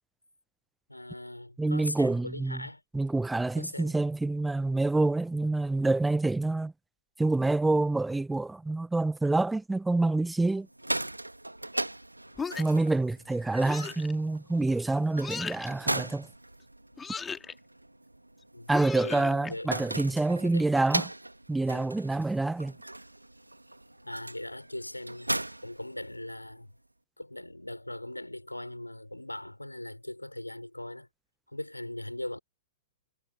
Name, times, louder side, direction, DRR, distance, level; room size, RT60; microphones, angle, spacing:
voice 1, 0.9-2.8 3.5-4.0 18.5-19.8 20.4-20.7 23.9-25.3 25.6-26.7 27.2-31.1 31.5-32.4, left 1 dB, 85° left, 4.8 m, -40 dB
voice 2, 1.6-2.6 2.9-6.7 7.2-10.7 12.6-16.3 18.7-21.0 21.5-22.7, right 2 dB, 5° right, 1.0 m, -27 dB
sound 1, 10.6-26.5, right 1 dB, 85° right, 2.2 m, -38 dB
sound 2, 12.4-12.9 13.7-14.1 15.2-15.7 17.0-17.5 18.7-19.5, left 5 dB, 15° left, 2.3 m, -37 dB
figure-of-eight pair, 105°, 0 cm